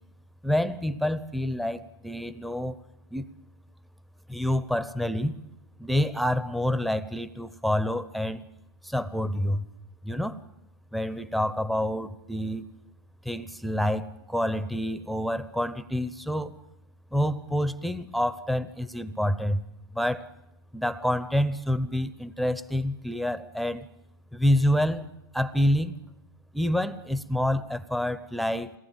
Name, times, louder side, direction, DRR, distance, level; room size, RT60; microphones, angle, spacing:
voice 1, 0.4-2.8 3.1-3.3 4.3-5.4 5.8-8.4 8.8-9.7 10.0-10.4 10.9-12.7 13.2-16.6 17.1-19.6 19.9-20.3 20.7-23.9 24.3-26.0 26.5-28.7, left 1 dB, ahead, 14 dB, 0.7 m, -27 dB
22.0 x 18.0 x 7.5 m, 0.90 s
hypercardioid pair, 120°, 12 cm